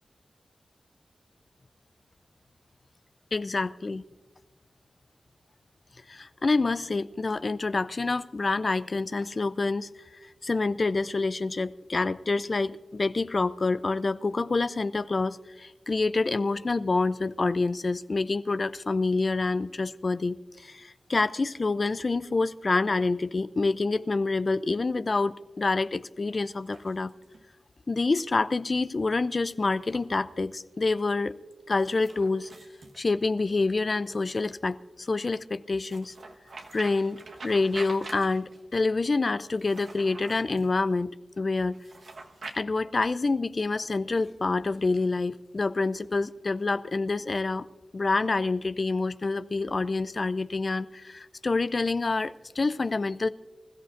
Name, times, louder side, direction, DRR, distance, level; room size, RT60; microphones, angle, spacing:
voice 1, 3.3-4.0 6.1-9.9 10.2-27.1 27.9-31.3 31.7-32.5 33.0-36.1 36.7-41.9 42.5-47.7 47.9-53.3, left 3 dB, 50° left, 0.4 m, -27 dB
sound 1, 26.5-27.5 29.7-30.1 31.7-33.6 35.8-38.6 39.5-40.7 41.7-42.6, right 3 dB, 75° right, 1.2 m, -46 dB
25.5 x 14.0 x 2.5 m
cardioid pair, 40°, 0 cm